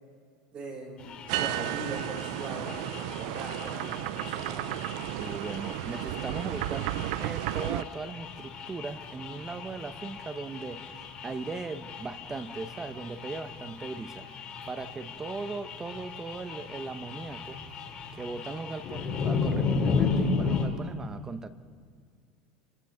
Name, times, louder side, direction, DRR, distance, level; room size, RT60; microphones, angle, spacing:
voice 1, 0.5-4.7, right 2 dB, 35° right, 0 dB, 7.0 m, -40 dB
sound 1, 1.0-20.7, left 5 dB, 35° left, 3.2 m, -35 dB
sound 2, 1.3-7.8, right 16 dB, 75° right, 0.5 m, -33 dB
voice 2, 5.2-10.9 11.2-17.6 18.1-21.5, right 4 dB, 20° right, 11 dB, 1.0 m, -38 dB
29.0 x 24.0 x 3.9 m, 2.1 s
supercardioid pair, 130°, 3 cm